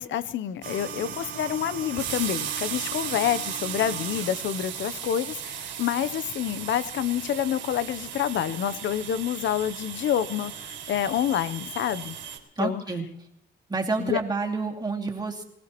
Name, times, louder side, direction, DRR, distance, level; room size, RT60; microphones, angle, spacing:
voice 1, 0.0-12.2 12.6-12.8 14.0-14.2, left 10 dB, 70° left, 16 dB, 0.8 m, -28 dB
sound 1, 0.6-12.4, right 9 dB, 70° right, 3.0 m, -36 dB
voice 2, 12.6-13.0 13.7-15.4, right 3 dB, 20° right, 0 dB, 2.5 m, -28 dB
24.0 x 15.5 x 3.0 m, 0.80 s
cardioid pair, 90°, 20 cm